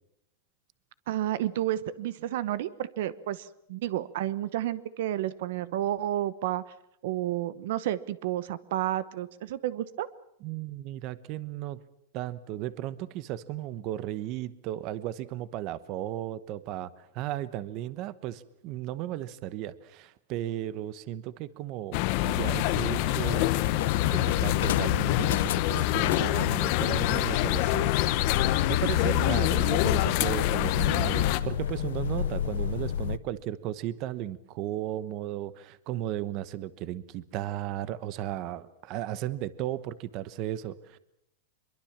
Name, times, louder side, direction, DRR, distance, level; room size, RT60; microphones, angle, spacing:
voice 1, 1.1-6.6 7.0-10.1, right 13 dB, 60° right, 17 dB, 1.0 m, -31 dB
voice 2, 10.4-11.8 12.1-23.5 24.1-27.9 28.7-41.0, right 13 dB, 35° right, 16 dB, 1.0 m, -35 dB
sound 1, 21.9-31.4, left 16 dB, 45° left, 1.1 m, -26 dB
sound 2, 23.6-33.2, left 9 dB, 85° left, 0.9 m, -32 dB
24.0 x 22.5 x 7.3 m, 0.78 s
supercardioid pair, 160°, 0 cm